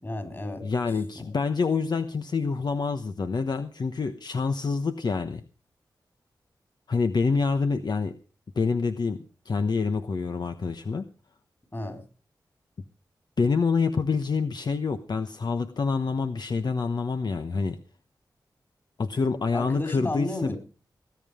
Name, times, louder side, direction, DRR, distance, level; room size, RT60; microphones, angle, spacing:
voice 1, 0.0-0.6 1.1-1.3 11.7-12.0 19.5-20.6, left 2 dB, 30° left, 7 dB, 4.5 m, -32 dB
voice 2, 0.6-5.4 6.9-8.1 8.6-11.0 13.4-17.8 19.0-20.6, left 4 dB, 60° left, 8 dB, 1.0 m, -27 dB
19.5 x 9.5 x 5.0 m, 0.36 s
cardioid pair, 65°, 8 cm